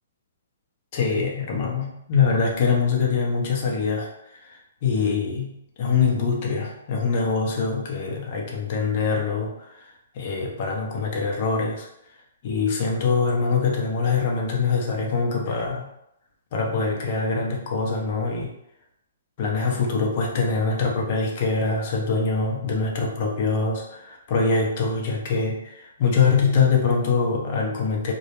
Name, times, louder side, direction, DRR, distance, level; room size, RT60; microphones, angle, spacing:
voice 1, 0.9-4.1 4.8-9.5 10.1-11.9 12.4-15.9 16.5-18.5 19.4-28.1, left 5 dB, 45° left, -1 dB, 0.7 m, -23 dB
2.2 x 2.1 x 3.0 m, 0.80 s
hypercardioid pair, 140°, 0 cm